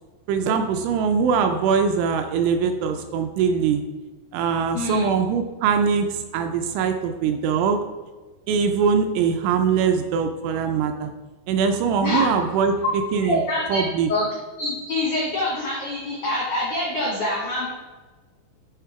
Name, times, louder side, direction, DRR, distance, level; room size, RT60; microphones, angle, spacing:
voice 1, 0.3-3.8 4.3-7.8 8.5-11.1 11.5-12.8 13.1-13.4 13.7-14.1, right 6 dB, 85° right, 6 dB, 2.8 m, -22 dB
voice 2, 4.7-5.1 12.0-12.2 13.2-13.8 14.1-14.3 14.6-17.7, left 1 dB, 80° left, -5 dB, 1.7 m, -25 dB
10.5 x 3.7 x 4.7 m, 1.3 s
omnidirectional pair, 5.7 m